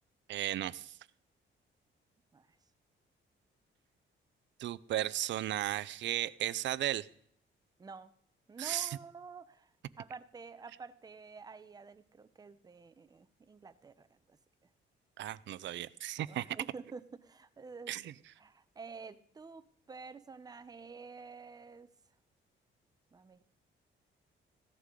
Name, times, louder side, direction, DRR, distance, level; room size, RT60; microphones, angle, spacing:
voice 1, 0.3-1.0 4.6-7.1 8.6-9.0 15.2-16.6 17.9-18.1, right 13 dB, 65° right, 18 dB, 0.5 m, -35 dB
voice 2, 7.8-8.1 8.5-9.7 10.0-14.4 16.3-21.9 23.1-23.4, right 4 dB, 20° right, 12 dB, 0.6 m, -49 dB
15.5 x 11.5 x 3.7 m, 0.69 s
cardioid pair, 175°, 21 cm